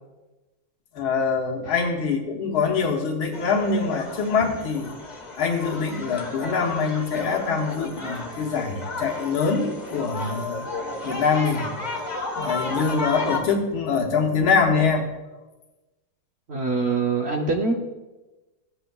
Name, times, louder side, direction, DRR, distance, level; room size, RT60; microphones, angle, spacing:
voice 1, 1.0-4.9 5.4-10.7 11.0-11.7 12.4-15.1, left 5 dB, 80° left, 2 dB, 1.9 m, -24 dB
sound 1, 3.3-13.4, left 2 dB, 30° left, 0.9 m, -33 dB
voice 2, 16.5-17.7, right 4 dB, 70° right, 0 dB, 0.6 m, -23 dB
16.0 x 8.0 x 2.3 m, 1.1 s
omnidirectional pair, 2.2 m